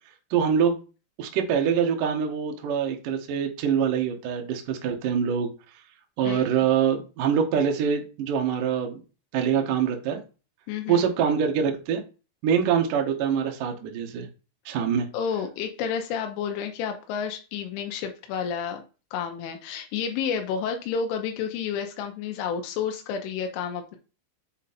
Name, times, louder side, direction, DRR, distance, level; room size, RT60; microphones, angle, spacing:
voice 1, 0.3-0.8 1.2-5.5 6.2-9.0 9.3-10.2 10.9-12.0 12.4-14.3 14.7-15.1, right 7 dB, 70° right, 3 dB, 2.0 m, -24 dB
voice 2, 10.7-11.1 15.1-18.8 19.1-24.0, left 7 dB, 90° left, 4 dB, 3.4 m, -30 dB
7.4 x 4.0 x 4.2 m, 0.33 s
omnidirectional pair, 5.5 m